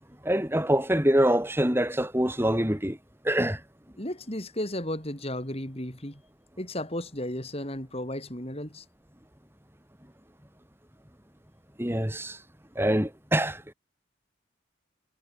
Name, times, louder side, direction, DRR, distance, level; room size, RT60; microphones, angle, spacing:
voice 1, 0.2-3.0 3.2-3.6 11.8-12.4 12.7-13.7, right 1 dB, 10° right, 4.5 m, -25 dB
voice 2, 4.0-6.2 6.6-8.8, left 1 dB, 30° left, 7.1 m, -34 dB
head